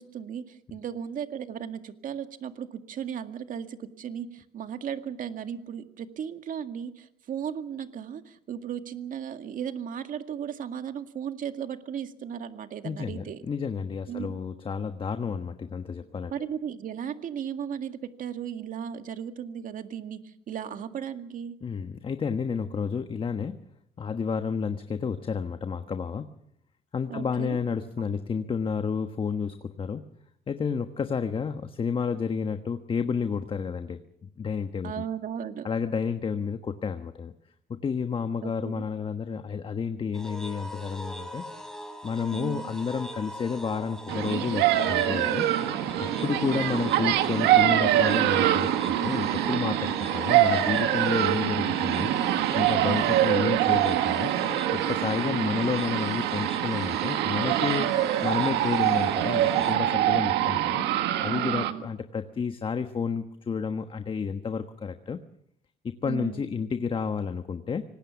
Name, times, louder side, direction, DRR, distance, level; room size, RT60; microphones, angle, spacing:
voice 1, 0.0-13.4 14.1-14.3 16.3-21.6 27.1-27.6 34.8-35.7 38.4-38.8 42.3-42.7 46.5-46.9 55.4-55.7 61.3-61.9 66.1-66.5, right 8 dB, 50° right, 8 dB, 2.0 m, -36 dB
voice 2, 12.8-16.3 21.6-23.6 24.0-26.2 26.9-30.0 30.5-35.0 35.6-37.3 37.7-41.4 42.0-45.4 46.0-52.1 52.5-54.3 54.7-60.8 61.2-65.2 65.8-67.8, left 6 dB, 30° left, 8 dB, 1.3 m, -31 dB
sound 1, 40.1-59.8, equal, 5° left, 4.1 m, -40 dB
sound 2, 44.1-61.7, right 12 dB, 85° right, 1.6 m, -24 dB
25.5 x 19.5 x 7.1 m, 0.71 s
cardioid pair, 110°, 17 cm